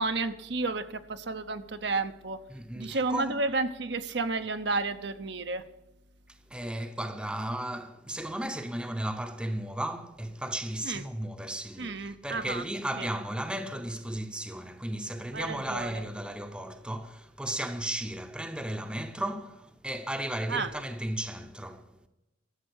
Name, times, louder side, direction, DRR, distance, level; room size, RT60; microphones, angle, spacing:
voice 1, 0.0-2.4 2.8-5.6 10.8-11.0 11.8-12.6 13.0-13.1 15.3-16.0 20.5-20.7, right 3 dB, 60° right, 0.8 m, -31 dB
voice 2, 2.5-3.4 6.3-21.9, right 1 dB, 5° right, 0.8 m, -35 dB
13.0 x 7.5 x 8.1 m
head